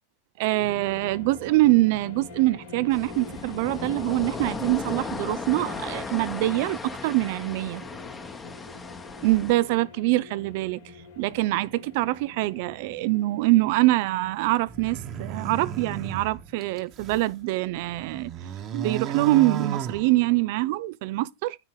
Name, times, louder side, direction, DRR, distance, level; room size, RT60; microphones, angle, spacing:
voice 1, 0.4-7.8 9.2-10.8 11.2-18.3 18.7-21.6, right 19 dB, 60° right, 0.5 m, -24 dB
sound 1, 0.6-18.3, left 3 dB, 80° left, 3.0 m, -46 dB
sound 2, 2.9-9.5, left 4 dB, 20° left, 1.1 m, -36 dB
sound 3, 14.7-17.3 17.8-20.6, right 7 dB, 40° right, 1.3 m, -34 dB
9.8 x 4.0 x 4.8 m
hypercardioid pair, 100°, 0 cm